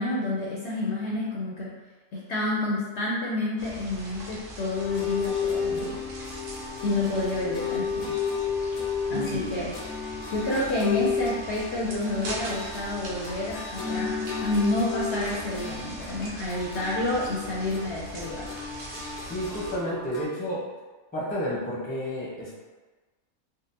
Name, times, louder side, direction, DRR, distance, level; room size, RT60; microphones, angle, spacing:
voice 1, 0.0-1.7 2.1-6.0 6.8-8.2 9.1-10.0 10.3-18.5, left 2 dB, 65° left, -5 dB, 0.7 m, -29 dB
sound 1, 3.6-19.8, right 1 dB, 55° right, 0.6 m, -41 dB
sound 2, 4.7-20.2, left 6 dB, 90° left, 1.1 m, -33 dB
voice 2, 9.1-9.5 18.8-18.9 19.2-20.7 21.1-22.6, equal, 10° left, -7 dB, 0.6 m, -31 dB
3.7 x 2.1 x 2.7 m, 1.3 s
omnidirectional pair, 1.5 m